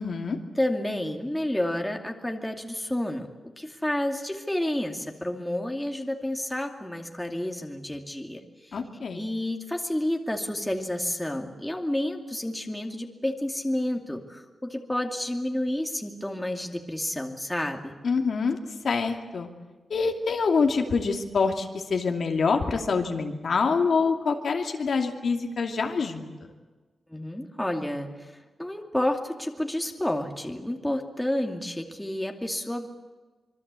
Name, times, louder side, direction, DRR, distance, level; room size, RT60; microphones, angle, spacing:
voice 1, 0.0-0.4 8.7-9.3 18.0-18.6 18.8-19.5 19.9-26.3, left 4 dB, 65° left, 3 dB, 2.6 m, -26 dB
voice 2, 0.5-3.3 3.6-8.8 9.1-17.9 27.1-32.9, left 1 dB, 5° left, 3 dB, 2.5 m, -30 dB
26.0 x 24.0 x 8.3 m, 1.3 s
wide cardioid pair, 125°, 0 cm